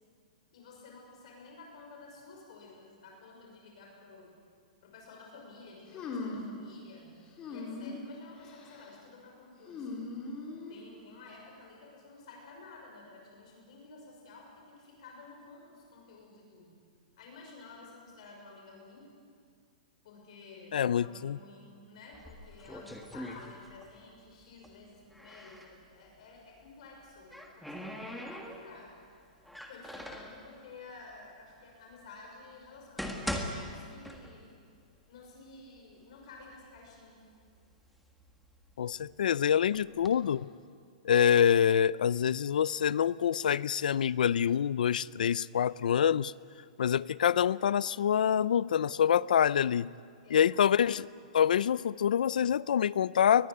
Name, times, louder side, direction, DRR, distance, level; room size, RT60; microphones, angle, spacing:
voice 1, 0.5-4.4 4.8-10.1 10.7-16.8 17.2-19.1 20.0-28.9 29.7-34.5 35.1-37.2 50.2-50.7, left 3 dB, 50° left, 0 dB, 6.0 m, -52 dB
sound 1, 5.9-6.6 7.4-8.0 8.4-8.8 9.7-10.8, left 3 dB, 20° left, 3.3 m, -40 dB
voice 2, 20.7-21.4 38.8-40.5 41.0-46.3 46.8-49.9 50.3-51.0 51.3-53.5, left 8 dB, 85° left, 20 dB, 0.5 m, -26 dB
sound 2, 22.1-24.0 24.3-25.7 26.8-28.9 29.4-30.4 31.2-31.3 31.9-32.0 32.6-34.6 35.0-35.1 35.8-35.9 36.2-36.9 37.4-39.1 39.7-40.1, equal, ahead, 1.6 m, -41 dB
22.0 x 20.5 x 9.7 m, 2.2 s
hypercardioid pair, 170°, 4 cm